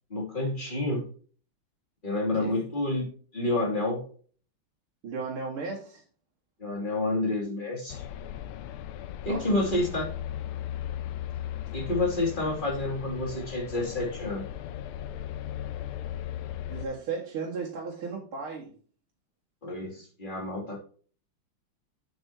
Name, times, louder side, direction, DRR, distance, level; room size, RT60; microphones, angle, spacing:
voice 1, 0.1-1.0 2.0-3.0 3.3-4.0 6.6-8.1 9.2-10.1 11.7-14.4 19.6-20.8, left 2 dB, 25° left, 0 dB, 2.8 m, -29 dB
voice 2, 2.4-2.7 5.0-6.0 9.2-9.8 16.7-18.7, right 4 dB, 80° right, -5 dB, 2.8 m, -35 dB
sound 1, 7.9-16.9, left 11 dB, 90° left, 1.6 m, -37 dB
8.8 x 8.0 x 2.8 m, 0.43 s
omnidirectional pair, 2.3 m